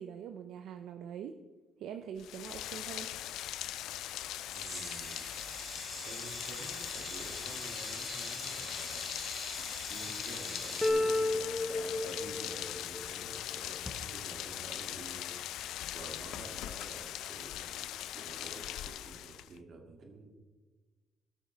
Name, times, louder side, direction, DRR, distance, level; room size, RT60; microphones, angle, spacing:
voice 1, 0.0-1.4 1.8-3.1, right 8 dB, 80° right, 8 dB, 0.5 m, -43 dB
Rain, 2.2-19.6, left 12 dB, 85° left, 0.4 m, -41 dB
sound 1, 4.4-10.9, equal, 15° right, 3.7 m, -44 dB
voice 2, 4.5-5.3 6.0-9.1 9.9-15.4 15.9-17.9 18.1-20.3, right 3 dB, 60° right, 2 dB, 2.2 m, -50 dB
sound 2, 10.8-13.9, left 2 dB, 10° left, 1.1 m, -32 dB
17.5 x 6.5 x 3.3 m, 1.3 s
cardioid pair, 90°, 0 cm